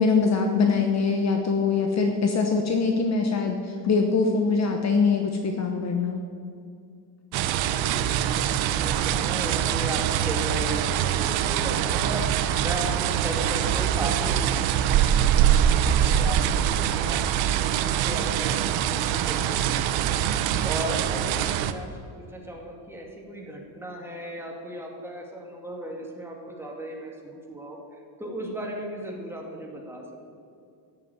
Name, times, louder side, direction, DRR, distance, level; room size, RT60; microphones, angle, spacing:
voice 1, 0.0-6.2, left 4 dB, 35° left, 4 dB, 1.1 m, -23 dB
voice 2, 7.3-30.0, right 1 dB, 5° right, -1 dB, 2.3 m, -36 dB
sound 1, 7.3-21.7, right 10 dB, 70° right, 0.9 m, -24 dB
14.0 x 7.5 x 9.3 m, 2.4 s
cardioid pair, 155°, 47 cm